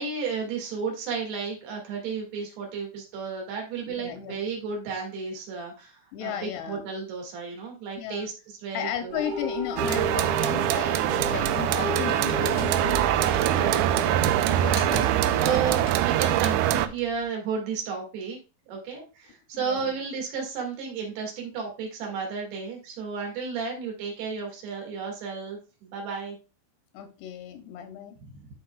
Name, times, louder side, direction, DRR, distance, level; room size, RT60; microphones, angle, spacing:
voice 1, 0.0-8.3 8.6-9.2 11.2-11.3 14.7-14.9 15.4-18.4 18.7-26.4 28.3-28.5, right 5 dB, 70° right, 4.0 m, -33 dB
voice 2, 3.8-4.4 6.1-6.8 8.0-8.3 8.7-12.7 13.2-13.8 14.5-15.5 19.5-20.0 26.9-28.2, left 10 dB, 85° left, 2.6 m, -35 dB
sound 1, 9.1-16.0, left 2 dB, 45° right, 2.2 m, -35 dB
sound 2, 9.8-16.9, right 12 dB, 90° right, 2.1 m, -23 dB
Computer keyboard, 10.3-17.2, left 3 dB, 50° left, 1.3 m, -43 dB
12.5 x 4.3 x 2.3 m
omnidirectional pair, 4.9 m